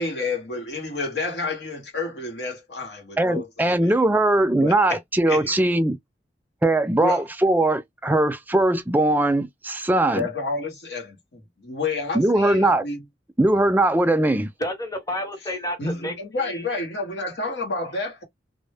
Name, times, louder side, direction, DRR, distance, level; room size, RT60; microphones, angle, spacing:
voice 1, 0.0-3.9 4.6-5.0 5.3-5.5 7.0-7.2 10.1-13.0 15.8-18.2, left 3 dB, 85° left, 1.0 m, -30 dB
voice 2, 3.2-6.0 6.6-10.3 12.1-12.9 13.4-14.5, right 1 dB, 10° right, 0.3 m, -20 dB
voice 3, 14.6-16.7, left 1 dB, 20° left, 0.7 m, -31 dB
2.0 x 2.0 x 3.3 m
head